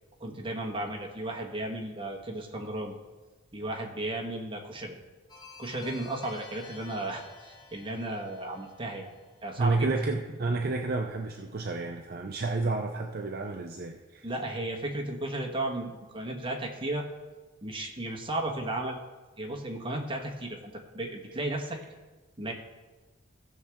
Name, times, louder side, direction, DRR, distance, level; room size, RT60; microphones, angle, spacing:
voice 1, 0.2-3.0 3.5-4.9 5.6-9.1 9.4-9.9 14.2-17.1 17.6-19.0 19.4-21.8 22.4-22.5, right 1 dB, 25° right, 0 dB, 1.3 m, -34 dB
sound 1, 5.3-10.1, left 3 dB, 20° left, 1.4 m, -51 dB
voice 2, 9.6-14.3, right 3 dB, 45° right, 3 dB, 0.5 m, -30 dB
16.0 x 6.5 x 3.6 m, 1.2 s
head